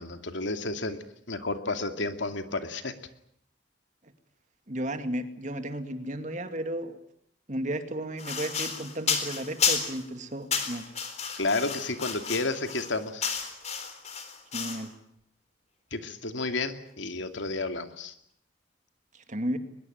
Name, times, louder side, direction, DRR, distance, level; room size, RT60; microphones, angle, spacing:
voice 1, 0.0-2.9 11.4-13.3 15.9-18.1, left 3 dB, 75° left, 8 dB, 2.5 m, -31 dB
voice 2, 4.7-7.0 7.5-10.9 14.5-14.9 19.1-19.6, right 1 dB, 40° right, 8 dB, 2.3 m, -34 dB
sound 1, 8.2-10.1 10.5-14.9, left 6 dB, 35° left, 3.9 m, -31 dB
22.5 x 22.0 x 9.3 m, 0.70 s
head